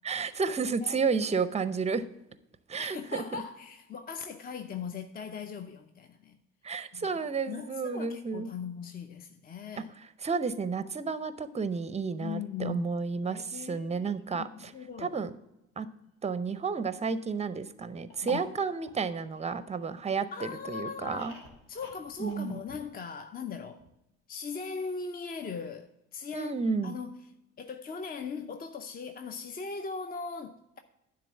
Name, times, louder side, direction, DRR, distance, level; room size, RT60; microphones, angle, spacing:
voice 1, 0.0-2.0 2.7-3.2 6.6-8.5 10.2-14.7 15.0-15.3 15.8-15.9 16.2-21.3 22.2-22.6 26.3-26.9, right 5 dB, 15° right, 0.6 m, -31 dB
voice 2, 2.8-6.4 6.9-7.1 7.5-9.9 12.2-12.9 13.2-15.2 18.2-18.4 20.3-21.3 21.7-23.8 24.3-26.5 26.8-27.2 27.6-30.8, left 5 dB, 25° left, 0.6 m, -39 dB
sound 1, 18.1-20.1 20.6-23.2 23.5-23.6 23.8-23.9, equal, 80° left, 1.6 m, -49 dB
10.0 x 3.8 x 7.0 m
hypercardioid pair, 55°, 38 cm